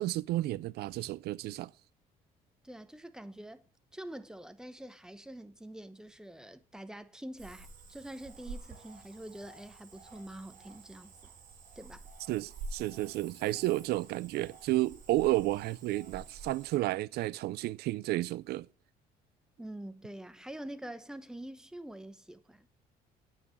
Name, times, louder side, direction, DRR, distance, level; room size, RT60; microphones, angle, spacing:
voice 1, 0.0-1.7 12.3-18.7, right 17 dB, 75° right, 0.4 m, -32 dB
voice 2, 2.6-3.6 3.9-11.3 11.8-12.0 19.6-22.7, right 1 dB, 5° right, 0.9 m, -46 dB
Cricket / Frog, 7.4-16.8, right 3 dB, 50° right, 4.7 m, -49 dB
9.1 x 7.1 x 7.2 m
cardioid pair, 110°, 17 cm